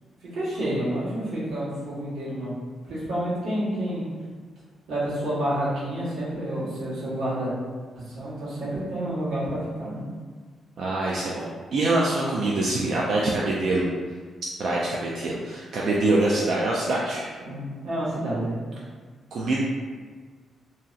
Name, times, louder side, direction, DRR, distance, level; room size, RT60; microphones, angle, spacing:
voice 1, 0.2-2.5 2.8-4.0 4.9-7.5 7.9-10.0 17.4-18.8, right 1 dB, 75° right, -8 dB, 1.2 m, -29 dB
voice 2, 10.8-13.9 14.6-17.3 19.3-19.6, right 2 dB, 50° right, -4 dB, 0.3 m, -24 dB
2.9 x 2.7 x 2.3 m, 1.5 s
wide cardioid pair, 175°, 0 cm